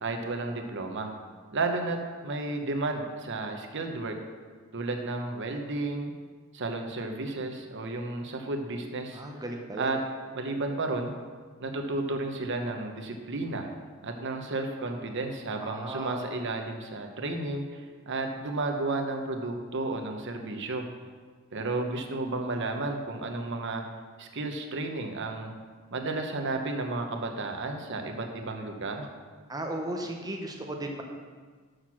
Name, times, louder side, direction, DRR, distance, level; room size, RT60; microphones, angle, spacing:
voice 1, 0.0-1.1 1.5-2.0 2.2-4.2 4.7-6.1 6.5-9.2 9.8-10.0 10.3-11.1 11.6-13.7 14.0-20.8 21.5-23.8 24.2-25.5 25.9-29.1, right 2 dB, 60° right, 4 dB, 0.9 m, -32 dB
voice 2, 9.1-9.9 15.6-16.2 29.5-31.0, right 1 dB, 20° right, 2 dB, 0.7 m, -35 dB
6.5 x 6.1 x 6.0 m, 1.5 s
head